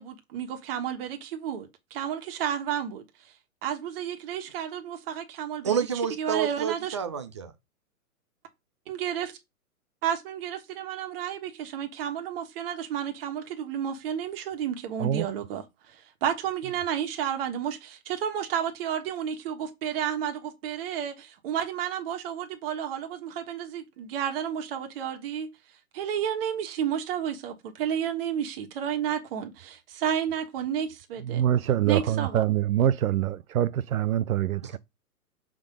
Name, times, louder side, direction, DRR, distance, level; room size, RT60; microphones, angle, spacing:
voice 1, 0.0-3.3 3.6-5.9 6.2-7.0 8.9-9.3 10.0-25.5 25.9-31.4 31.9-32.4, right 9 dB, 40° right, 1.3 m, -31 dB
voice 2, 5.6-7.5 34.6-34.8, right 7 dB, 20° right, 0.4 m, -29 dB
voice 3, 31.2-34.8, right 11 dB, 70° right, 0.7 m, -25 dB
6.1 x 3.8 x 5.1 m
hypercardioid pair, 150°, 44 cm